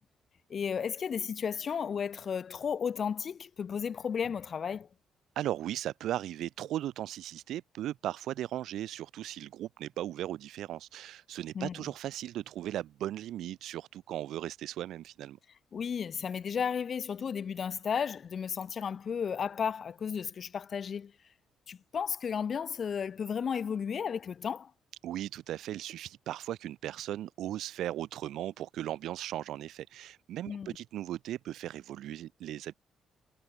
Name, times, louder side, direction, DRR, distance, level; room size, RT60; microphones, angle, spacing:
voice 1, 0.5-4.9 11.5-11.8 15.7-21.1 21.7-24.7 30.5-30.8, left 7 dB, 50° left, 0.7 m, -33 dB
voice 2, 5.4-15.4 25.0-32.7, right 12 dB, 80° right, 2.1 m, -37 dB
cardioid pair, 90°, 0 cm